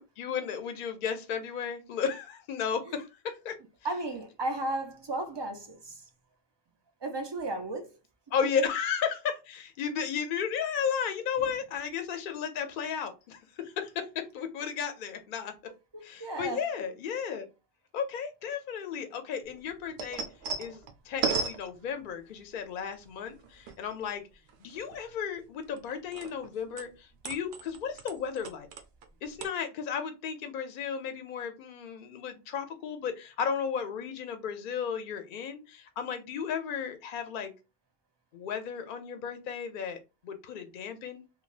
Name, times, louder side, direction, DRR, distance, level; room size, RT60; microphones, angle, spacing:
voice 1, 0.0-3.6 8.3-15.5 16.0-17.5 17.9-20.2 20.6-24.2 24.6-28.7 29.2-37.5 38.3-41.2, left 7 dB, 60° left, 0.7 m, -34 dB
voice 2, 3.8-6.0 7.0-8.0 15.9-16.6, right 2 dB, 40° right, 0.4 m, -34 dB
sound 1, 19.4-22.4 23.0-24.1 24.5-26.5 26.8-29.1 29.4-29.5, right 5 dB, 85° right, 0.9 m, -36 dB
3.3 x 2.2 x 2.4 m
omnidirectional pair, 1.0 m